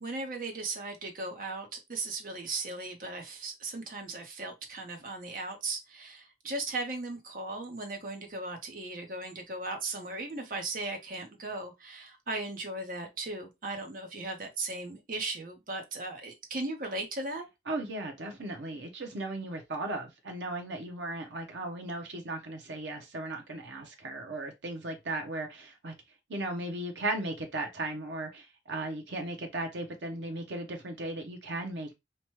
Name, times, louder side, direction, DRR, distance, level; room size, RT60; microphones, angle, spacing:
voice 1, 0.0-17.4, right 2 dB, 45° right, 0.7 m, -37 dB
voice 2, 17.7-25.9 26.3-32.0, right 2 dB, 80° right, 0.7 m, -36 dB
2.9 x 2.2 x 3.0 m
head